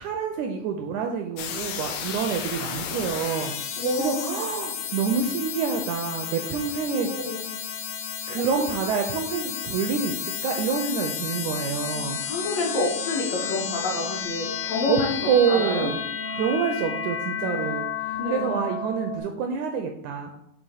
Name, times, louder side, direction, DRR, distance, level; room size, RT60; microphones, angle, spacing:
voice 1, 0.0-3.5 4.0-7.1 8.3-12.2 14.9-16.0 16.4-20.3, right 6 dB, 80° right, 4 dB, 1.7 m, -27 dB
sound 1, 1.4-19.2, left 7 dB, 80° left, 1.6 m, -32 dB
voice 2, 3.8-4.4 6.9-7.5 11.9-15.1 15.5-15.9 16.3-16.4 18.2-18.5, left 2 dB, 65° left, -2 dB, 1.9 m, -29 dB
7.1 x 2.8 x 5.5 m, 0.78 s
omnidirectional pair, 3.8 m